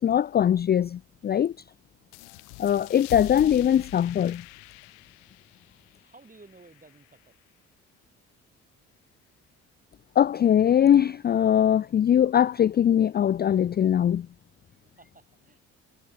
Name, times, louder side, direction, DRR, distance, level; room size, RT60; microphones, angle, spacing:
voice 1, 0.0-1.5 2.6-4.4 10.2-14.3, left 9 dB, 30° left, 0.4 m, -21 dB
sound 1, 2.1-7.3, left 40 dB or more, 80° left, 1.0 m, -44 dB
voice 2, 6.0-7.3 14.8-15.6, right 3 dB, 25° right, 6.2 m, -54 dB
hypercardioid pair, 55°, 34 cm